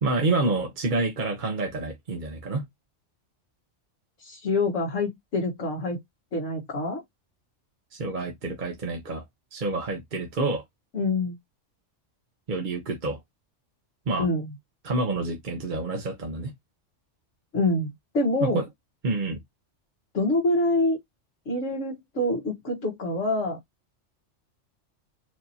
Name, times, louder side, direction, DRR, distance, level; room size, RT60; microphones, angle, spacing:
voice 1, 0.0-2.6 7.9-9.2 9.5-10.6 12.5-13.2 14.1-14.3 14.8-16.5 18.4-18.6 19.0-19.4, right 3 dB, 45° right, 1.0 m, -28 dB
voice 2, 4.2-6.0 6.3-7.0 10.9-11.4 14.2-14.5 17.5-18.6 20.1-21.0 21.4-23.6, left 2 dB, 70° left, 1.6 m, -26 dB
4.6 x 2.8 x 2.7 m
omnidirectional pair, 1.3 m